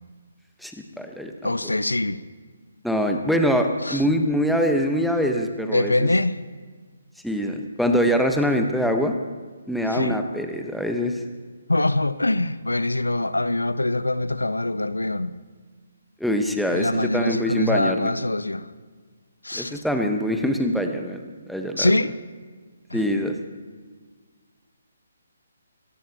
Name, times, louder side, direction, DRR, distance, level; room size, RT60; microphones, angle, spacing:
voice 1, 0.6-1.3 2.8-6.1 7.2-9.1 9.7-11.2 16.2-18.1 19.5-21.9 22.9-23.3, equal, ahead, 1.2 m, -24 dB
voice 2, 1.4-2.2 3.8-4.0 5.6-6.4 9.9-10.2 11.7-15.4 16.7-18.7 19.4-19.8 21.8-22.1 22.9-23.0, left 2 dB, 80° left, 0.7 m, -24 dB
24.5 x 18.5 x 3.0 m
figure-of-eight pair, 140°, 0 cm